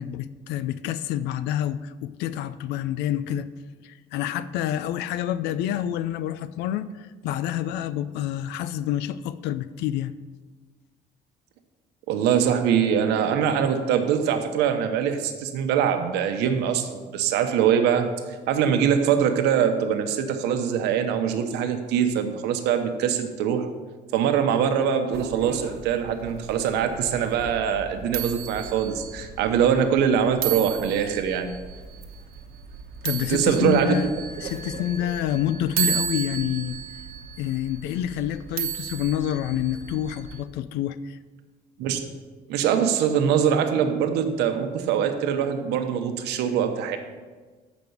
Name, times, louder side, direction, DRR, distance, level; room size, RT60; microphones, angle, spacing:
voice 1, 0.0-3.5 3.8-10.1 33.0-34.1 34.4-36.8 37.4-41.2, left 11 dB, 90° left, 15 dB, 0.5 m, -28 dB
voice 2, 12.1-18.1 18.5-23.7 24.1-31.5 33.3-33.9 41.8-42.0 42.5-47.0, right 8 dB, 90° right, 7 dB, 0.9 m, -23 dB
sound 1, 25.1-40.4, right 9 dB, 70° right, 1.0 m, -34 dB
7.8 x 5.2 x 7.0 m, 1.3 s
cardioid pair, 110°, 17 cm